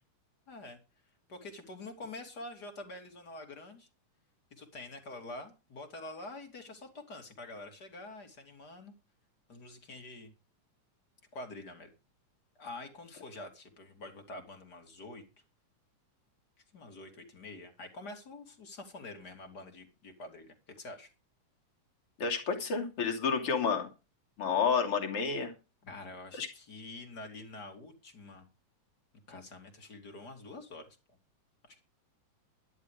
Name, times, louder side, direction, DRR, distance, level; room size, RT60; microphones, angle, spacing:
voice 1, 0.5-0.8 1.3-3.9 4.5-8.9 9.5-10.3 11.3-11.9 12.6-15.2 16.7-21.1 25.8-28.5 29.3-30.9 31.7-31.8, left 2 dB, 35° left, 5 dB, 3.2 m, -46 dB
voice 2, 22.2-23.9 24.4-25.5 26.4-26.5, left 5 dB, 50° left, 3 dB, 3.6 m, -30 dB
13.5 x 11.5 x 5.0 m, 0.30 s
omnidirectional pair, 3.5 m